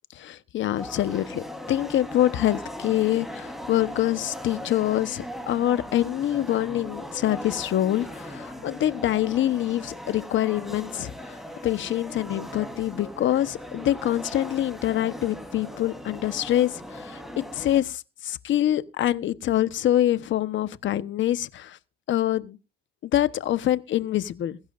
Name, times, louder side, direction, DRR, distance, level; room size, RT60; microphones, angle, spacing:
voice 1, 0.1-11.4 11.6-17.2 17.5-21.8 22.1-22.6 23.0-24.6, left 12 dB, 75° left, 1.1 m, -25 dB
sound 1, 0.8-17.8, left 1 dB, ahead, 3.7 m, -39 dB
22.5 x 11.0 x 2.6 m
cardioid pair, 90°, 20 cm